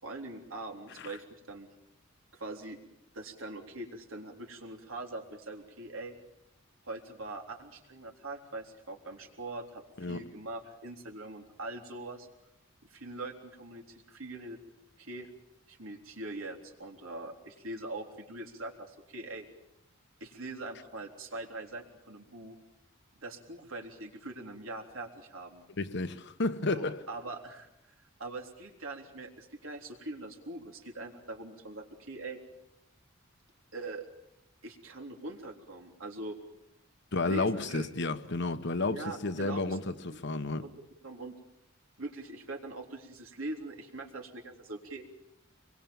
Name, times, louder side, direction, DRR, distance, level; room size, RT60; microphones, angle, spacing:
voice 1, 0.0-1.7 2.3-2.8 3.1-6.1 6.8-12.3 12.9-14.6 15.0-15.3 15.7-19.5 20.2-22.6 23.2-25.6 26.7-32.4 33.7-34.1 34.6-36.4 37.2-37.9 38.9-39.8 40.1-40.2 40.6-40.7 41.0-41.4 42.0-45.0, right 2 dB, 85° right, 3.7 m, -42 dB
voice 2, 25.8-27.0 37.1-40.6, left 2 dB, 60° left, 1.2 m, -32 dB
25.5 x 22.5 x 7.2 m
head